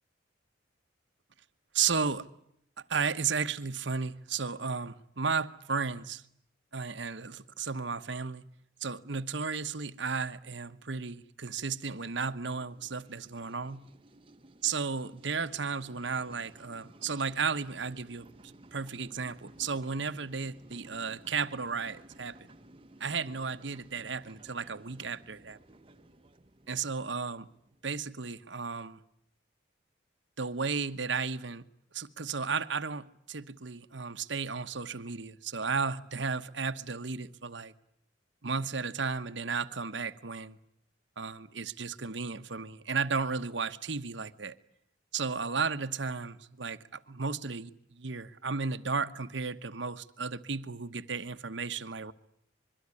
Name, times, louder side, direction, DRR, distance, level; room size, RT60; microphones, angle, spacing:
voice 1, 1.7-2.3 2.9-6.2 6.7-8.5 8.8-13.9 14.6-22.4 23.0-25.6 26.7-27.5 27.8-29.0 30.4-31.7 31.9-37.7 38.4-40.6 41.2-44.6 45.1-52.1, right 5 dB, 65° right, 1.1 m, -34 dB
sound 1, 11.5-28.2, right 1 dB, 30° right, 1.0 m, -56 dB
25.0 x 23.0 x 9.8 m
head